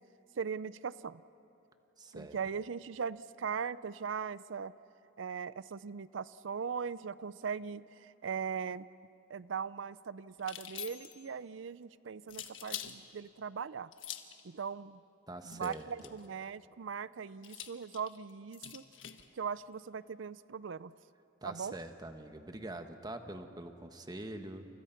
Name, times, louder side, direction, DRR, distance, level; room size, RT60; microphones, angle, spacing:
voice 1, 0.3-1.2 2.1-4.7 5.2-8.9 9.3-13.9 14.4-15.0 15.4-18.9 19.4-20.9 21.4-21.8, right 6 dB, 75° right, 17 dB, 0.5 m, -39 dB
voice 2, 2.0-2.4 15.3-16.1 21.4-24.7, right 1 dB, 20° right, 6 dB, 1.4 m, -44 dB
sound 1, 10.4-11.3 12.3-13.0 13.9-14.4 15.5-16.3 17.4-19.3, left 10 dB, 75° left, 1.4 m, -45 dB
29.5 x 28.5 x 5.9 m, 2.7 s
head